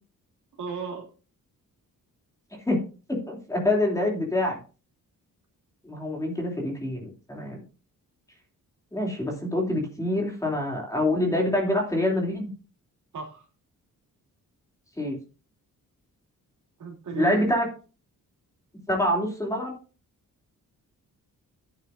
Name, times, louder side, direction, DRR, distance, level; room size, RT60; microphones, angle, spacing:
voice 1, 0.6-1.1 13.1-13.5 16.8-17.5, right 5 dB, 60° right, 1 dB, 2.9 m, -34 dB
voice 2, 3.1-4.6 5.8-7.6 8.9-12.5 15.0-15.2 17.2-17.7 18.9-19.7, left 1 dB, 10° left, -1 dB, 2.9 m, -26 dB
12.0 x 8.9 x 2.6 m, 0.34 s
wide cardioid pair, 170°, 34 cm